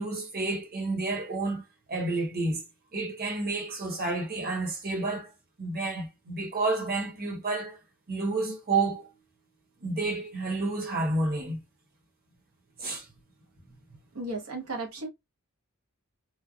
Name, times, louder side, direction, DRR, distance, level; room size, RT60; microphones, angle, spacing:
voice 1, 0.0-1.6 1.9-2.6 2.9-5.3 5.6-7.8 8.1-9.1 9.8-11.6 12.8-13.1, right 3 dB, 45° right, 1.1 m, -30 dB
voice 2, 14.1-15.1, right 2 dB, 70° right, 1.0 m, -34 dB
3.1 x 2.2 x 2.4 m
head